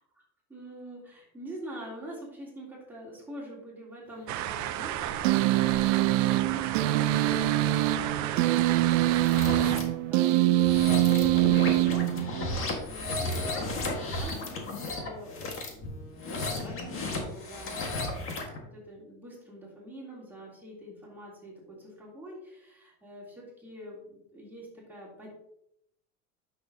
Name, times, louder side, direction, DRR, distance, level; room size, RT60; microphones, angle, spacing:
voice 1, 0.5-17.8 18.6-25.3, right 1 dB, 5° right, -5 dB, 3.2 m, -45 dB
sound 1, 4.3-9.8, right 11 dB, 50° right, 0.7 m, -33 dB
sound 2, 5.2-12.7, right 15 dB, 85° right, 0.5 m, -24 dB
sound 3, 9.1-9.8 10.5-18.6, left 2 dB, 35° left, 1.7 m, -34 dB
9.0 x 6.6 x 2.8 m, 0.77 s
cardioid pair, 140°, 37 cm